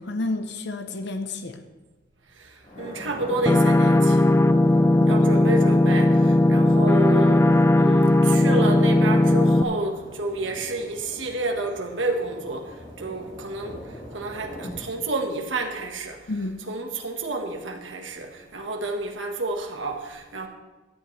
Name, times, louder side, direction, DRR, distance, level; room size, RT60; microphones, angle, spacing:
voice 1, 0.0-1.6 5.0-5.1 16.3-16.6, left 2 dB, 65° left, 7 dB, 0.8 m, -30 dB
voice 2, 2.3-4.3 5.1-16.3 16.7-20.5, right 2 dB, 85° right, 3 dB, 1.4 m, -30 dB
Thunder, 2.6-14.7, left 1 dB, 40° left, 4.3 m, -42 dB
sound 1, 3.5-9.6, left 1 dB, 15° left, 0.4 m, -17 dB
16.0 x 10.5 x 3.2 m, 1.2 s
head